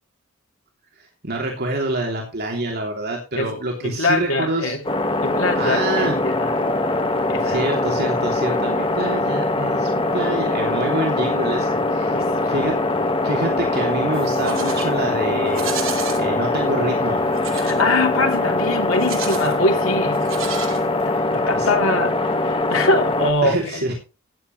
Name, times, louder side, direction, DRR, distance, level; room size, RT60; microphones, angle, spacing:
voice 1, 1.2-4.7 5.5-6.1 7.4-12.1 12.5-12.8 13.2-15.7 16.2-17.2 21.5-21.7 23.4-23.9, right 2 dB, 50° right, 3.1 m, -26 dB
voice 2, 3.8-4.8 5.2-6.5 7.3-7.6 10.9-11.0 12.1-12.5 17.5-20.3 21.1-22.2 22.4-23.9, left 2 dB, 80° left, 3.0 m, -23 dB
sound 1, 4.8-23.3, left 2 dB, 25° left, 1.6 m, -22 dB
Livestock farm animals working animals, 14.1-14.9 15.5-16.2 17.3-17.8 18.9-19.6 20.1-21.2, right 7 dB, 75° right, 3.5 m, -32 dB
15.0 x 10.0 x 3.2 m
head